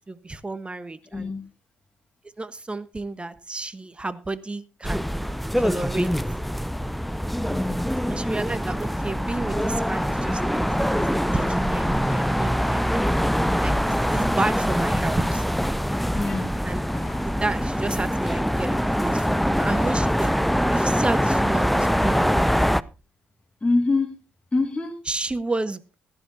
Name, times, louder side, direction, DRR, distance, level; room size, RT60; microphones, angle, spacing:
voice 1, 0.0-1.3 2.4-5.1 5.6-6.1 8.1-13.1 13.6-15.4 16.6-16.8 17.2-22.7 25.1-26.0, right 2 dB, 20° right, 14 dB, 1.1 m, -31 dB
voice 2, 1.1-1.5 7.5-7.9 16.1-16.6 23.6-24.2 24.5-25.0, left 3 dB, 20° left, 3 dB, 2.1 m, -25 dB
sound 1, 4.8-22.8, equal, ahead, 0.5 m, -24 dB
sound 2, 11.9-12.8 13.1-13.9 14.2-14.4 14.7-17.5 17.7-18.8 19.1-21.6, left 7 dB, 55° left, 1.6 m, -46 dB
16.0 x 13.0 x 2.8 m, 0.31 s
hypercardioid pair, 50°, 5 cm